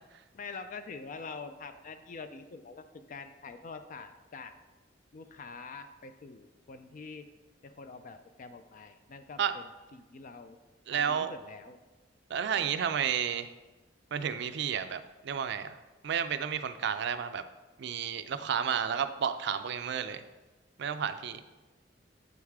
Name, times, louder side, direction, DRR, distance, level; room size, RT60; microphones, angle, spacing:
voice 1, 0.3-4.5 5.1-7.3 7.6-10.6 10.9-11.8, left 4 dB, 45° left, 9 dB, 0.4 m, -45 dB
voice 2, 10.9-11.3 12.3-13.5 14.1-15.8 16.0-17.4 17.8-20.2 20.8-21.4, right 7 dB, 65° right, 11 dB, 0.4 m, -31 dB
7.9 x 4.8 x 3.5 m, 1.2 s
head